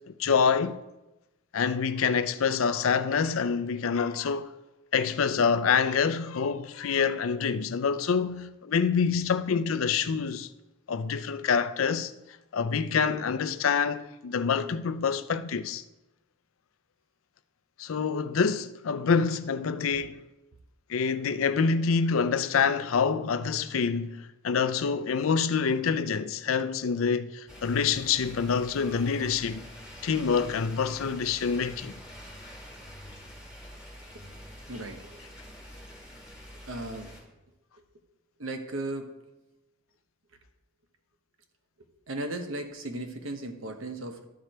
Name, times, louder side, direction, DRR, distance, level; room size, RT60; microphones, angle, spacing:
voice 1, 0.1-0.8 1.5-4.5 4.9-10.5 10.9-12.1 12.5-15.8 17.8-20.2 20.9-29.6 30.0-31.9, left 6 dB, 85° left, 0.5 m, -26 dB
sound 1, 27.5-37.2, equal, 5° right, 2.4 m, -46 dB
voice 2, 34.7-35.3 36.7-37.1 37.8-37.9 38.4-39.1 42.1-44.3, right 2 dB, 80° right, 1.1 m, -36 dB
12.5 x 5.0 x 4.3 m
head